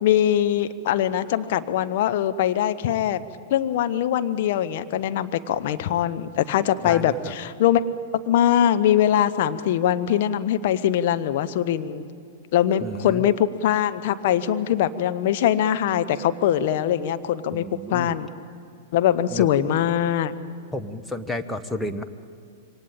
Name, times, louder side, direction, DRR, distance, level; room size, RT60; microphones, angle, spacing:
voice 1, 0.0-3.2 3.5-7.8 8.1-12.0 12.5-17.6 17.9-18.3 18.9-20.3, left 10 dB, 50° left, 11 dB, 1.1 m, -22 dB
voice 2, 6.8-7.3 12.8-13.2 17.5-18.2 19.3-19.5 20.7-22.0, left 1 dB, 5° left, 5 dB, 1.2 m, -31 dB
27.0 x 23.5 x 8.9 m, 2.3 s
figure-of-eight pair, 100°, 0 cm